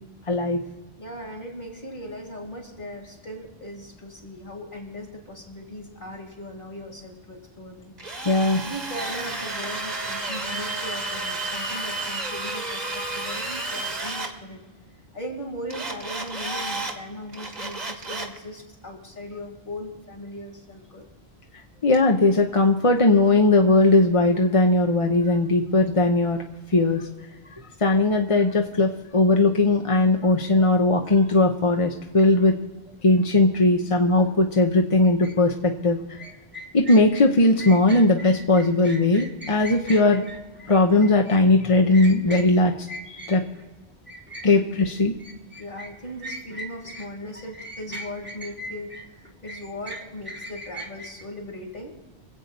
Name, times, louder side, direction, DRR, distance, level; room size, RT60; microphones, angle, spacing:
voice 1, 0.3-0.6 8.2-8.6 21.8-26.4 26.7-27.1 27.8-32.5 33.0-36.0 36.7-40.2 40.7-42.7 43.1-43.4 44.4-45.1, left 2 dB, 35° left, 3 dB, 0.8 m, -19 dB
voice 2, 1.0-7.9 8.5-14.6 15.1-21.1 45.6-52.0, left 1 dB, 50° left, 0 dB, 3.2 m, -38 dB
Drill, 8.0-14.3 15.7-16.9 17.3-18.4, right 2 dB, 40° right, 1.5 m, -31 dB
sound 1, 35.2-35.3 36.2-43.7 44.1-47.1 47.3-51.2, equal, 10° right, 1.2 m, -39 dB
24.5 x 8.2 x 4.1 m, 1.2 s
omnidirectional pair, 1.1 m